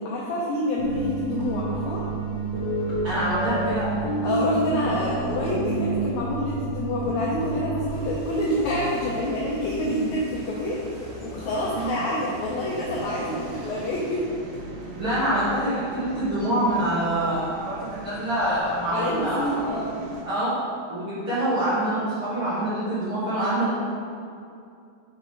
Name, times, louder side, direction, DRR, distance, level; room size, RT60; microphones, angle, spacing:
voice 1, 0.0-2.0 4.2-14.3 18.9-19.9, left 1 dB, 85° left, -5 dB, 1.6 m, -27 dB
sound 1, 0.8-8.1, right 2 dB, 45° left, 1.7 m, -29 dB
voice 2, 3.0-4.0 9.8-9.9 11.7-11.9 15.0-19.6 20.2-23.7, right 1 dB, 70° right, -11 dB, 1.2 m, -26 dB
sound 2, 7.8-14.1, left 1 dB, 45° right, 2.1 m, -40 dB
sound 3, 12.6-20.2, right 2 dB, 90° right, 2.9 m, -40 dB
6.0 x 4.7 x 4.8 m, 2.4 s
omnidirectional pair, 4.3 m